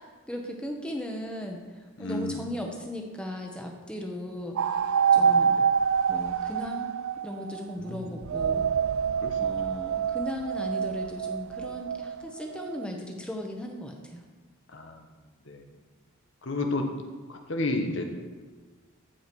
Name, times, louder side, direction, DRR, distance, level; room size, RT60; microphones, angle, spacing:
voice 1, 0.3-1.6 2.0-4.6 5.1-5.6 6.1-7.0 7.2-8.6 9.4-14.2, left 1 dB, 5° left, 1 dB, 1.1 m, -37 dB
voice 2, 2.0-2.4 5.2-5.6 7.8-8.2 9.2-9.4 14.7-15.0 15.5-15.7 16.4-16.9 17.3-18.0, left 2 dB, 55° left, 4 dB, 1.1 m, -32 dB
sound 1, 4.6-7.7 8.2-12.9, right 7 dB, 65° right, 0.3 m, -26 dB
14.5 x 5.0 x 5.3 m, 1.4 s
head